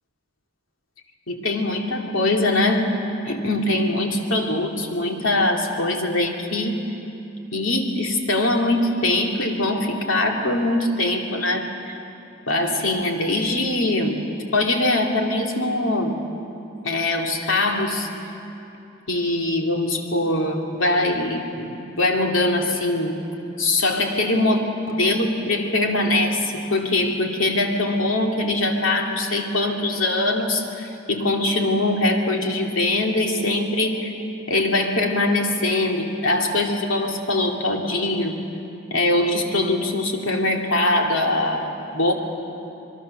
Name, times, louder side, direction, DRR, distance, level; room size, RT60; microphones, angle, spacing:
voice 1, 1.3-2.9 3.3-6.8 7.5-11.9 12.5-14.2 14.5-16.2 16.8-18.1 19.1-23.2 23.6-24.6 24.9-34.1 34.5-38.4 38.9-42.1, left 2 dB, 80° left, 1 dB, 2.7 m, -22 dB
26.0 x 22.0 x 6.8 m, 2.8 s
head